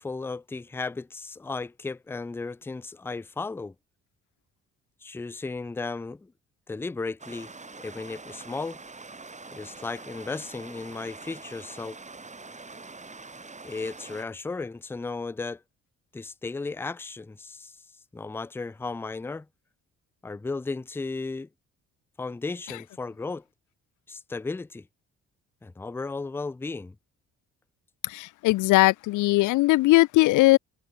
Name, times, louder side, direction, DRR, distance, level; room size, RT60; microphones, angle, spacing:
voice 1, 0.0-3.7 5.0-6.3 6.7-8.8 9.5-12.0 13.6-15.6 16.1-17.7 18.1-19.5 20.2-21.5 22.2-23.4 24.1-24.9 25.6-27.0, left 3 dB, 10° left, 0.4 m, -35 dB
Stream, 7.2-14.2, right 3 dB, 25° right, 6.2 m, -44 dB
voice 2, 28.0-30.6, left 19 dB, 85° left, 0.5 m, -20 dB
cardioid pair, 90°, 30 cm